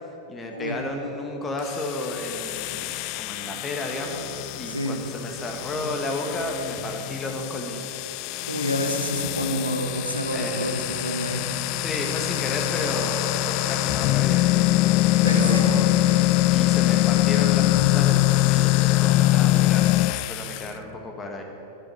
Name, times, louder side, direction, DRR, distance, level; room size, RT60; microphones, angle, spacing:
voice 1, 0.3-4.3 4.5-7.9 10.3-10.9 11.8-14.8 15.2-16.1 16.5-19.9 20.3-21.4, left 1 dB, 20° left, 2 dB, 1.7 m, -32 dB
sound 1, 1.6-20.7, left 17 dB, 45° left, 0.3 m, -23 dB
voice 2, 8.5-11.4 15.2-15.8, equal, 90° left, 2 dB, 1.2 m, -28 dB
11.0 x 7.3 x 9.7 m, 2.9 s
figure-of-eight pair, 90°, 0 cm